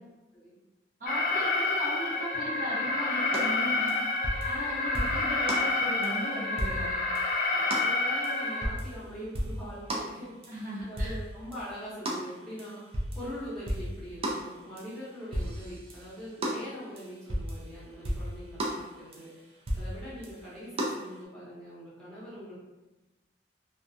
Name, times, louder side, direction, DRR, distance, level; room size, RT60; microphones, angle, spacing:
voice 1, 1.0-4.0 4.4-6.9 10.5-11.1, equal, 50° right, -7 dB, 0.8 m, -37 dB
Alarm, 1.1-8.7, left 3 dB, 50° left, 0.5 m, -29 dB
sound 1, 3.3-3.5 3.9-4.6 4.9-5.2 5.5-5.7 6.0-6.2 6.6-6.9 7.1-7.3 7.7-7.9 8.2-8.9 9.3-9.6 9.9-10.1 10.4-10.6 11.0-11.3 11.5-11.6 12.0-12.3 12.6-13.3 13.7-13.9 14.2-14.5 14.8-15.0 15.3-16.7 17.0-17.7 18.0-18.3 18.6-18.8 19.1-19.3 19.7-20.0 20.2-20.4 20.8-21.0, equal, 35° right, 0.4 m, -33 dB
voice 2, 7.5-22.6, equal, 5° left, -10 dB, 0.8 m, -43 dB
2.3 x 2.1 x 2.6 m, 1.1 s
head